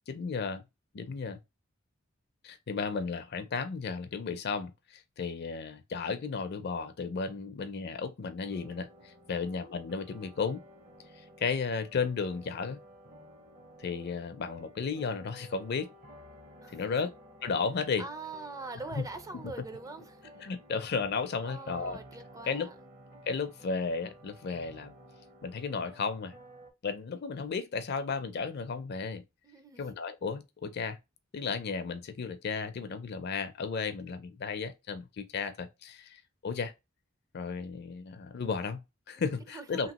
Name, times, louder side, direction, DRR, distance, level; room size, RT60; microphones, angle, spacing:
voice 1, 0.1-0.6 0.9-1.4 2.4-10.6 11.4-12.8 13.8-15.9 16.7-17.1 17.4-18.0 19.0-19.1 19.4-19.5 20.4-22.0 22.5-22.7 23.3-24.9 25.4-26.3 26.8-29.2 29.8-31.0 31.3-36.7 37.3-39.9, left 5 dB, 55° left, 0.5 m, -34 dB
sound 1, 8.4-26.7, equal, 45° right, 0.8 m, -53 dB
voice 2, 16.6-17.1 18.0-20.3 21.4-22.8 29.4-29.8 39.2-39.9, right 3 dB, 15° right, 0.4 m, -44 dB
2.9 x 2.9 x 2.9 m
head